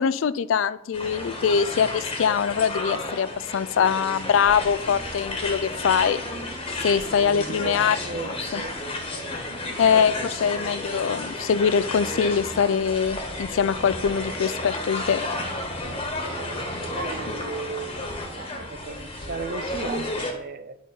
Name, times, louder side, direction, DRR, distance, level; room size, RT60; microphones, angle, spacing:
voice 1, 0.0-6.2 6.8-8.0 8.3-8.6 9.8-15.2, left 7 dB, 80° left, 16 dB, 0.4 m, -23 dB
sound 1, 0.9-20.3, left 2 dB, 30° left, 1.3 m, -32 dB
voice 2, 7.0-8.8 9.9-10.3 15.9-20.8, right 4 dB, 45° right, 11 dB, 0.5 m, -37 dB
9.2 x 5.1 x 4.5 m, 0.81 s
head